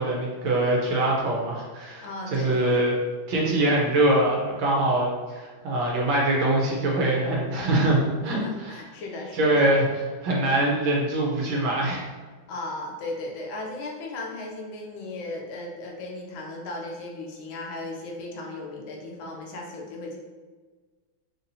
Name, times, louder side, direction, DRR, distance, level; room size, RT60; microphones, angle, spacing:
voice 1, 0.0-2.9 3.3-8.8 9.3-12.0, right 1 dB, 70° right, -3 dB, 1.5 m, -23 dB
voice 2, 2.0-2.8 8.2-9.7 12.5-20.2, left 2 dB, 75° left, -1 dB, 1.4 m, -36 dB
4.2 x 2.9 x 2.6 m, 1.4 s
omnidirectional pair, 2.3 m